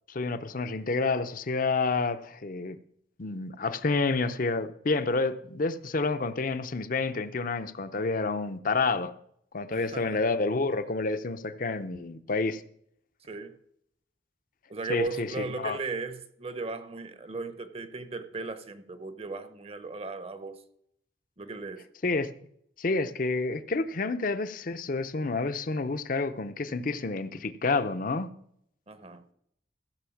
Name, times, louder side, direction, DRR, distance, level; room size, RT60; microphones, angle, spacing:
voice 1, 0.1-2.8 3.2-9.1 9.5-12.6 14.9-15.8 22.0-22.3 22.8-28.3, left 3 dB, 50° left, 0.7 m, -29 dB
voice 2, 9.7-10.2 13.3-13.6 14.7-20.6 21.4-21.9 28.9-29.2, right 3 dB, 35° right, 0.8 m, -37 dB
15.0 x 5.4 x 7.1 m
head